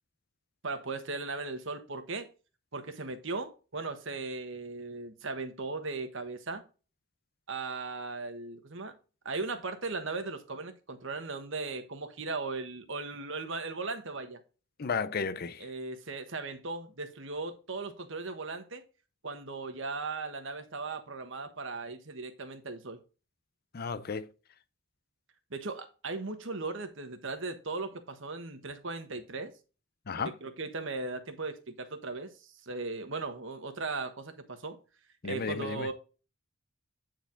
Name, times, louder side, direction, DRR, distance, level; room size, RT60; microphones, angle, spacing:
voice 1, 0.6-2.3 2.7-6.6 7.5-8.9 9.2-14.4 15.6-18.8 19.2-23.0 25.5-29.5 30.2-34.8 35.2-35.9, right 3 dB, 60° right, 1.3 m, -37 dB
voice 2, 14.8-15.7 23.7-24.3 30.1-30.3 35.2-35.9, left 5 dB, 45° left, 0.6 m, -33 dB
9.1 x 4.7 x 3.9 m
head